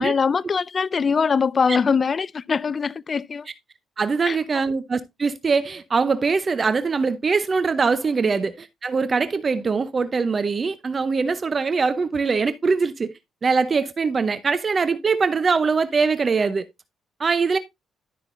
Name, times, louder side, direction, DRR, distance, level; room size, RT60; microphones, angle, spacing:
voice 1, 0.0-3.5 4.3-4.4, left 5 dB, 40° left, 0.4 m, -22 dB
voice 2, 4.0-13.1 13.4-16.6 17.2-17.6, right 4 dB, 35° right, 0.7 m, -22 dB
13.0 x 5.8 x 2.5 m
cardioid pair, 90°, 0 cm